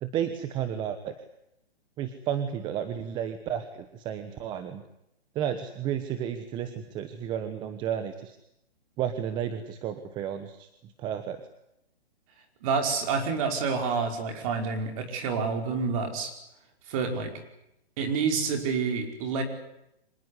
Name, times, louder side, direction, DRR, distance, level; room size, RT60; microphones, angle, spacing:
voice 1, 0.0-1.1 2.0-4.8 5.3-8.4 9.0-10.7 11.0-11.4, right 9 dB, 15° right, 10 dB, 1.1 m, -32 dB
voice 2, 12.6-16.3 16.9-17.3 18.0-19.4, right 5 dB, 35° right, 5 dB, 5.1 m, -28 dB
25.5 x 19.5 x 9.7 m, 0.82 s
hypercardioid pair, 155°, 31 cm